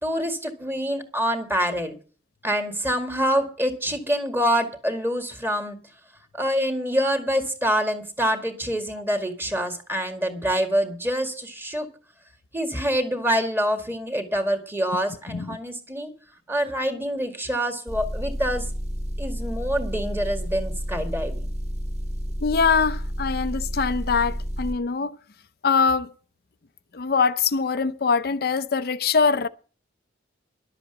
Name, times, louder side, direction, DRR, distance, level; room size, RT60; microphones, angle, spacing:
voice 1, 0.0-1.9 2.4-5.8 6.3-11.9 12.5-16.1 16.5-18.7 19.2-21.3, equal, 10° right, 1.9 m, -26 dB
Motor vehicle (road) / Engine, 17.9-24.8, equal, 35° right, 2.3 m, -30 dB
voice 2, 22.4-25.1 25.6-26.1 26.9-29.5, left 5 dB, 55° left, 0.6 m, -23 dB
11.5 x 7.9 x 8.2 m
head